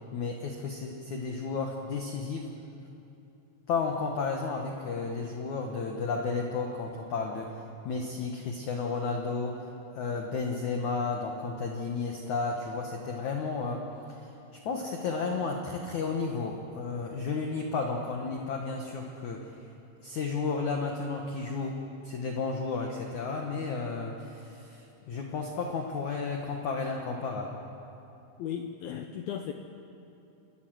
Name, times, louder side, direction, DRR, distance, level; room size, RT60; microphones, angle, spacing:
voice 1, 0.1-2.5 3.7-7.5 7.9-9.7 9.9-13.8 14.2-19.5 20.0-21.8 22.0-27.6, left 4 dB, 70° left, 2 dB, 1.8 m, -32 dB
voice 2, 28.4-29.5, left 9 dB, 90° left, 6 dB, 2.1 m, -36 dB
29.0 x 13.5 x 7.7 m, 2.8 s
omnidirectional pair, 5.2 m